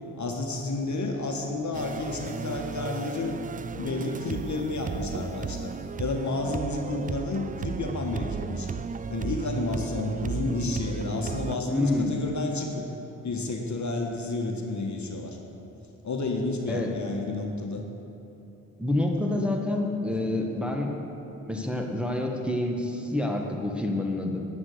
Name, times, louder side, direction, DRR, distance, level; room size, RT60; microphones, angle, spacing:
voice 1, 0.2-3.4 3.8-5.7 6.0-8.7 9.1-12.9 13.2-15.4 16.0-17.8 20.1-20.3, left 2 dB, 50° left, 2 dB, 1.6 m, -31 dB
sound 1, 1.7-11.6, right 6 dB, 25° right, 0.4 m, -34 dB
voice 2, 11.7-12.2 16.7-16.9 18.8-20.9 21.5-24.4, left 1 dB, 5° right, 0 dB, 1.7 m, -27 dB
9.7 x 9.5 x 6.6 m, 2.9 s
hypercardioid pair, 45°, 38 cm